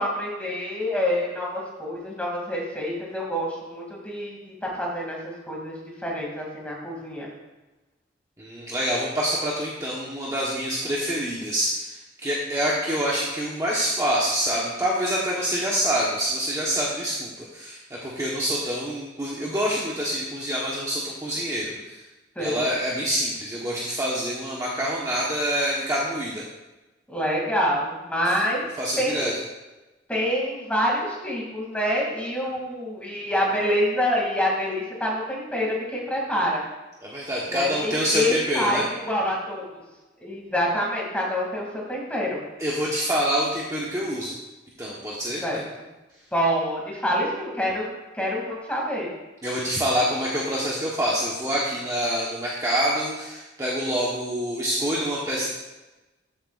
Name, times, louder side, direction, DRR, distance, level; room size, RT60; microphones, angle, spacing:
voice 1, 0.0-7.3 22.4-22.6 27.1-28.7 29.0-29.3 30.1-36.6 37.5-38.8 39.1-39.8 40.2-42.4 45.4-45.6 46.3-47.9 48.2-49.1, equal, 5° left, -3 dB, 2.5 m, -26 dB
voice 2, 8.4-22.0 22.4-26.4 28.8-29.3 37.0-38.8 42.6-44.3 44.8-45.4 49.4-55.5, equal, 15° right, -5 dB, 1.1 m, -26 dB
13.5 x 7.9 x 2.5 m, 1.1 s
head